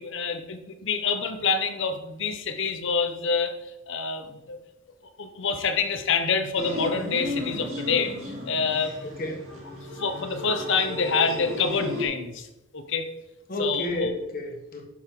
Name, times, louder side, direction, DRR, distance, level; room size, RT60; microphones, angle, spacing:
voice 1, 0.0-3.5 3.9-4.6 5.2-8.1 8.5-8.9 9.9-12.5 12.7-13.1 13.6-14.1, left 5 dB, 60° left, 8 dB, 1.0 m, -27 dB
sound 1, 6.6-12.1, left 1 dB, 60° right, 3.3 m, -34 dB
voice 2, 9.0-9.5 13.5-14.8, left 1 dB, 45° left, 2 dB, 1.5 m, -31 dB
10.5 x 6.4 x 3.8 m, 0.93 s
head